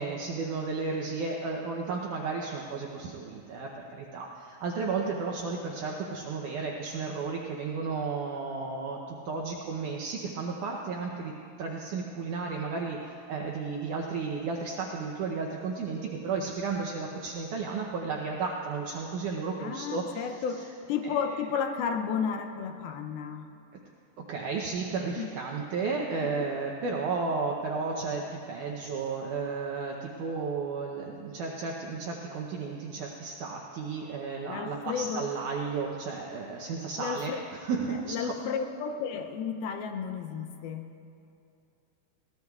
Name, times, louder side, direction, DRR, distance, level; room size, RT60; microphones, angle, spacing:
voice 1, 0.0-11.3 11.6-20.6 21.0-21.2 24.3-38.3, right 4 dB, 85° right, 0 dB, 1.7 m, -33 dB
voice 2, 19.6-23.5 25.2-25.3 26.4-26.5 34.5-35.3 37.0-37.4 38.1-40.9, left 6 dB, 80° left, 6 dB, 2.4 m, -33 dB
22.0 x 18.0 x 2.4 m, 2.6 s
omnidirectional pair, 4.7 m